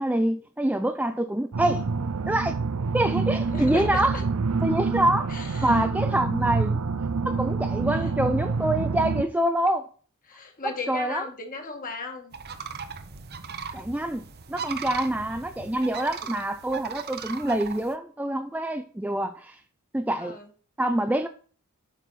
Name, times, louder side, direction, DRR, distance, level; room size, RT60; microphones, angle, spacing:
voice 1, 0.0-1.8 2.3-2.6 2.9-4.2 4.6-5.3 5.6-6.8 7.2-9.9 10.6-11.2 13.7-14.2 14.5-19.6 19.9-20.4 20.8-21.3, right 1 dB, 5° right, 0.5 m, -26 dB
sound 1, 1.5-9.2, right 4 dB, 85° right, 0.6 m, -27 dB
voice 2, 3.5-4.3 5.3-5.8 7.9-8.1 10.3-12.4 20.2-20.5, left 3 dB, 40° left, 2.0 m, -37 dB
sound 2, 12.3-17.9, right 6 dB, 45° right, 1.0 m, -38 dB
9.1 x 6.3 x 4.1 m
head